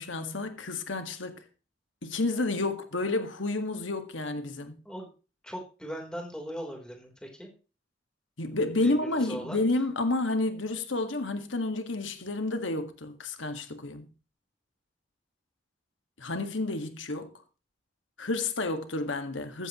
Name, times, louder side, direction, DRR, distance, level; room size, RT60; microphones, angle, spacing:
voice 1, 0.0-1.4 2.0-4.8 8.4-14.1 16.2-17.3 18.2-19.7, left 2 dB, 85° left, 1.8 m, -30 dB
voice 2, 5.4-7.5 8.8-9.6, equal, 5° left, 3.7 m, -39 dB
14.5 x 14.5 x 3.1 m
head